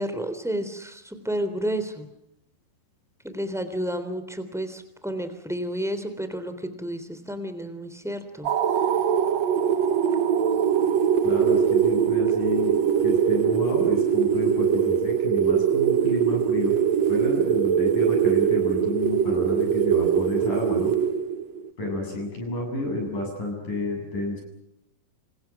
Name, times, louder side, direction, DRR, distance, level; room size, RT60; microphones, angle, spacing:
voice 1, 0.0-2.1 3.2-8.5, equal, ahead, 9 dB, 2.5 m, -31 dB
sound 1, 8.5-21.7, right 8 dB, 85° right, 1.5 m, -22 dB
voice 2, 11.2-16.8 17.1-20.9 21.8-24.4, left 2 dB, 45° left, 2 dB, 8.8 m, -30 dB
29.0 x 28.5 x 6.1 m, 0.80 s
omnidirectional pair, 5.0 m